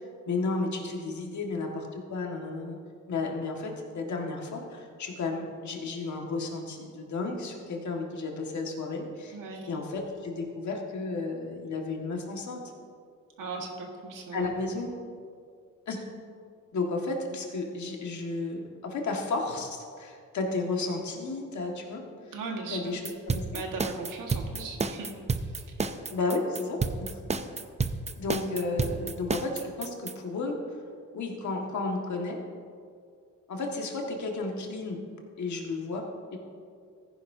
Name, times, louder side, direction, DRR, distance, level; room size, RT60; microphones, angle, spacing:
voice 1, 0.3-2.8 3.1-9.4 9.7-12.6 14.3-14.9 15.9-16.0 16.7-22.0 22.7-23.6 26.1-26.8 27.1-27.2 28.2-30.6 31.1-32.4 33.5-35.0 35.4-36.0 36.3-36.4, left 3 dB, 60° left, 1 dB, 1.8 m, -33 dB
voice 2, 9.3-9.7 13.4-14.5 22.3-22.8 23.5-25.1, right 4 dB, 75° right, 1 dB, 1.7 m, -37 dB
sound 1, 23.1-30.1, right 4 dB, 20° right, 0.5 m, -30 dB
15.0 x 10.5 x 2.7 m, 2.2 s
cardioid pair, 90°, 32 cm